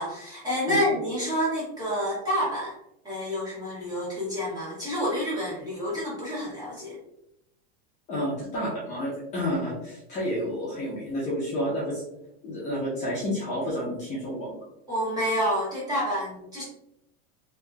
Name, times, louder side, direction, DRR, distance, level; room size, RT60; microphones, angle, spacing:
voice 1, 0.0-2.7 3.0-7.0 14.9-16.6, equal, 10° right, -8 dB, 1.2 m, -28 dB
voice 2, 8.1-12.0 12.4-14.6, equal, 25° left, -7 dB, 0.7 m, -30 dB
3.0 x 2.9 x 2.3 m, 0.84 s
supercardioid pair, 165°, 31 cm